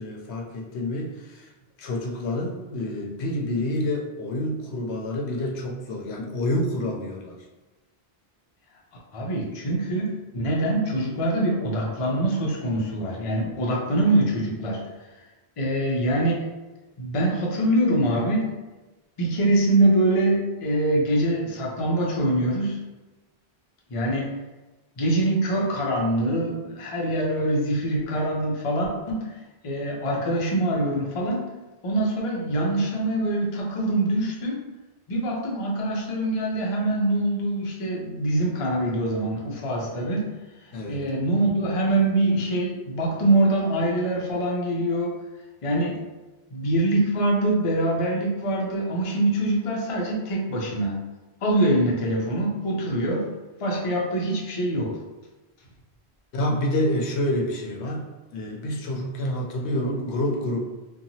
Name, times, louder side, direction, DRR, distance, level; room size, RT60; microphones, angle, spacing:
voice 1, 0.0-1.5 1.8-7.4 9.7-9.8 40.7-41.1 56.3-60.6, left 1 dB, 85° left, 0 dB, 0.8 m, -28 dB
voice 2, 9.1-14.8 15.6-16.5 17.0-18.5 19.2-22.8 23.9-24.3 25.0-29.4 29.6-31.4 31.8-34.6 35.1-40.3 40.6-45.2 45.6-46.0 46.5-51.0 51.4-53.3 53.6-54.9, right 1 dB, 40° left, -2 dB, 0.5 m, -24 dB
2.8 x 2.3 x 2.6 m, 1.1 s
omnidirectional pair, 1.1 m